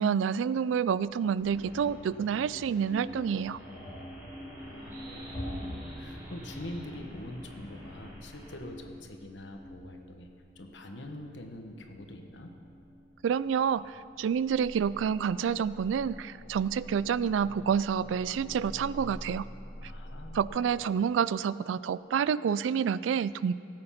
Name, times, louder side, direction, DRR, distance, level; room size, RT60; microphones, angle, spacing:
voice 1, 0.0-3.6 13.2-13.8 14.2-19.5 20.3-23.5, right 7 dB, 90° right, 18 dB, 0.3 m, -28 dB
sound 1, 0.7-20.5, equal, 30° left, 2.8 m, -46 dB
sound 2, 1.4-8.6, equal, 15° right, 3.0 m, -48 dB
voice 2, 4.6-10.3 10.5-12.5 19.8-20.4 20.8-20.9, left 1 dB, 70° left, 4 dB, 1.2 m, -45 dB
16.5 x 7.9 x 5.7 m, 2.5 s
head